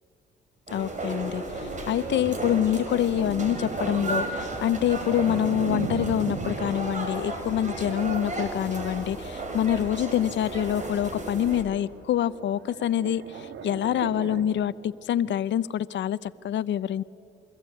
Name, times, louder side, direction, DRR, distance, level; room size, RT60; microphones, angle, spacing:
voice 1, 0.7-17.0, left 10 dB, 65° left, 16 dB, 0.8 m, -26 dB
sound 1, 0.7-11.6, right 2 dB, 40° right, 5.4 m, -33 dB
sound 2, 1.4-9.7 10.5-11.9 12.2-14.4, right 6 dB, 70° right, 2.2 m, -39 dB
28.5 x 23.5 x 8.5 m, 2.5 s
cardioid pair, 90°, 20 cm